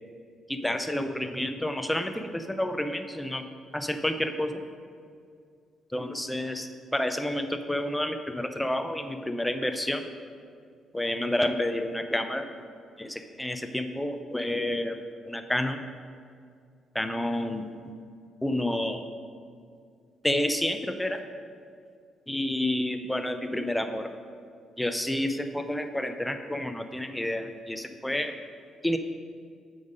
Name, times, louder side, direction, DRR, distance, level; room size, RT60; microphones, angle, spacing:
voice 1, 0.5-3.4 3.7-4.6 5.9-10.0 10.9-12.5 13.0-15.0 15.3-15.8 16.9-17.7 18.4-19.0 20.2-21.2 22.3-24.1 24.8-28.3 28.8-29.0, left 1 dB, 5° left, 7 dB, 0.6 m, -29 dB
7.7 x 5.4 x 5.1 m, 2.2 s
cardioid pair, 90°, 0 cm